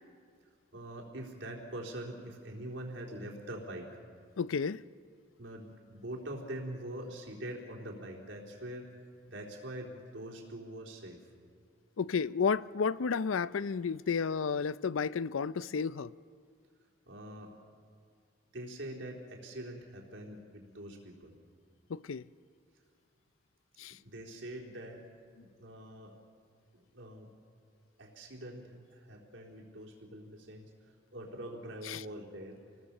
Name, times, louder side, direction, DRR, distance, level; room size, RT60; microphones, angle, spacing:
voice 1, 0.7-4.0 5.4-8.9 9.3-11.2 17.1-17.5 18.5-21.4 24.0-25.1 25.6-26.2 26.7-27.3 28.0-32.6, right 1 dB, 70° right, 3.8 m, -44 dB
voice 2, 4.4-4.8 12.0-16.1 21.9-22.2 23.8-24.0 31.8-32.0, left 5 dB, 90° left, 0.5 m, -32 dB
28.0 x 19.5 x 7.2 m
head